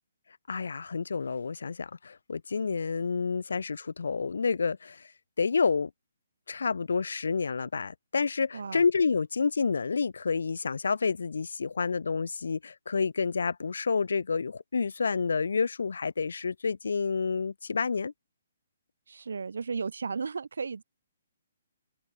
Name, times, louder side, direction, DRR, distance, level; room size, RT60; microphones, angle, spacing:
voice 1, 0.5-5.0 5.4-5.9 6.5-18.1, left 5 dB, 85° left, 4.6 m, -29 dB
voice 2, 8.5-8.8 19.1-20.8, right 5 dB, 85° right, 6.0 m, -34 dB
open air
hypercardioid pair, 180°, 0 cm